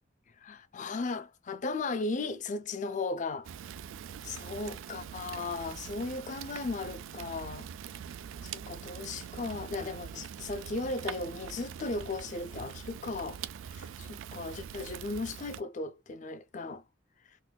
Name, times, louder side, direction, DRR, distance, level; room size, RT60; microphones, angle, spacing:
voice 1, 0.4-3.5 4.2-7.7 8.4-13.4 13.7-16.8, left 3 dB, 40° left, 0.4 m, -36 dB
Fire, 3.4-15.6, right 8 dB, 85° right, 0.3 m, -43 dB
3.8 x 2.5 x 2.2 m
head